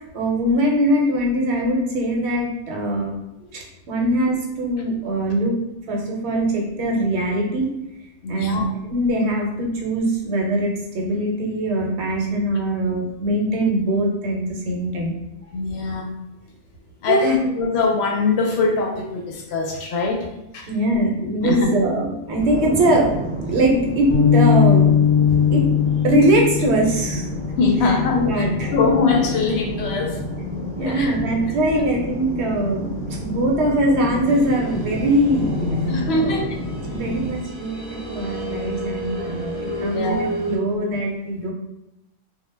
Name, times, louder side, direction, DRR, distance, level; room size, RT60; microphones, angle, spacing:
voice 1, 0.1-3.1 3.5-5.5 5.9-7.7 8.3-8.6 8.9-15.1 17.1-17.4 20.7-23.1 23.5-24.9 25.5-25.7 26.0-27.3 28.1-28.7 30.7-32.9 33.2-35.7 36.1-36.4 36.9-41.5, right 1 dB, 65° right, -1 dB, 0.8 m, -22 dB
voice 2, 8.2-8.7 15.5-16.1 17.0-20.7 21.4-21.7 27.6-28.4 28.7-30.2 30.8-31.2 31.7-31.8 35.9-36.6 39.8-40.3, left 4 dB, 65° left, 1 dB, 0.7 m, -22 dB
sound 1, 22.4-37.4, equal, 10° right, 0.4 m, -30 dB
sound 2, 24.1-30.5, left 8 dB, 40° right, 0.7 m, -20 dB
sound 3, 34.3-40.6, right 1 dB, 30° left, 0.7 m, -32 dB
2.2 x 2.0 x 3.2 m, 0.90 s
omnidirectional pair, 1.3 m